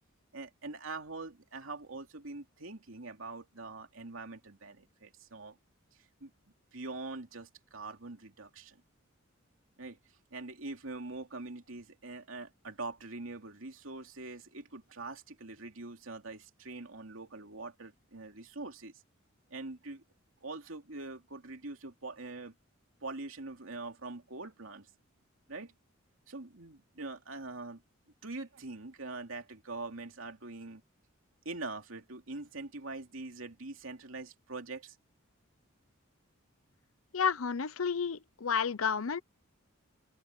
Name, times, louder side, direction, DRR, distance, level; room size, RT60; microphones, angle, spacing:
voice 1, 0.3-5.6 6.2-6.3 6.7-8.8 9.8-10.0 10.3-18.9 19.5-20.0 20.4-22.5 23.0-24.9 25.5-25.7 26.3-27.8 28.2-30.8 31.4-35.0, right 3 dB, 80° right, 2.8 m, -43 dB
voice 2, 37.1-39.2, left 6 dB, 85° left, 0.8 m, -31 dB
open air
head